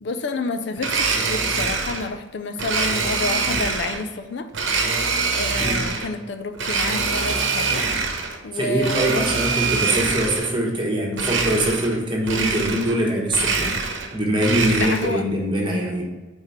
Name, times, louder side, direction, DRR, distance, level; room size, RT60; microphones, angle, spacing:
voice 1, 0.0-4.5 5.3-7.9 8.4-9.3 14.7-15.2, left 3 dB, 60° left, 9 dB, 0.4 m, -29 dB
Domestic sounds home sounds, 0.8-2.1 2.6-4.0 4.5-6.1 6.6-8.4 8.8-10.5 11.1-12.0 12.2-13.0 13.3-15.2, right 4 dB, 70° right, 0.9 m, -24 dB
voice 2, 8.5-13.7 14.1-16.0, right 1 dB, 25° right, -1 dB, 1.2 m, -23 dB
4.9 x 4.4 x 5.7 m, 1.3 s
head